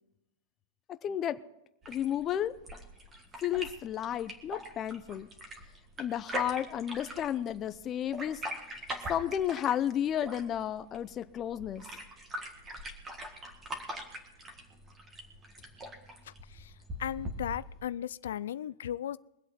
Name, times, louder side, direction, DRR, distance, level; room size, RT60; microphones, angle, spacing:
voice 1, 1.0-1.4 1.9-2.5 3.4-5.3 6.0-8.4 9.1-11.8, left 10 dB, 20° left, 0.6 m, -32 dB
sound 1, 1.8-17.8, equal, 15° right, 1.7 m, -42 dB
voice 2, 17.0-19.2, left 10 dB, 80° left, 0.3 m, -35 dB
23.0 x 8.2 x 4.3 m
supercardioid pair, 165°, 0 cm